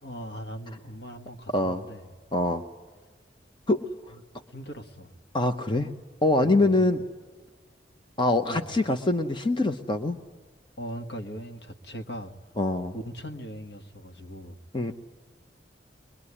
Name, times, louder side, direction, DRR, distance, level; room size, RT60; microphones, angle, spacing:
voice 1, 0.0-2.1 4.1-4.2 4.5-5.1 6.4-7.0 8.5-8.7 10.8-12.5 12.9-14.6, equal, 65° left, 5 dB, 1.8 m, -40 dB
voice 2, 1.5-1.8 2.3-2.6 3.7-3.8 5.3-5.9 6.2-7.0 8.2-10.2 12.6-12.9 14.7-14.9, left 2 dB, 25° left, 6 dB, 0.9 m, -24 dB
22.5 x 22.0 x 9.9 m, 1.4 s
head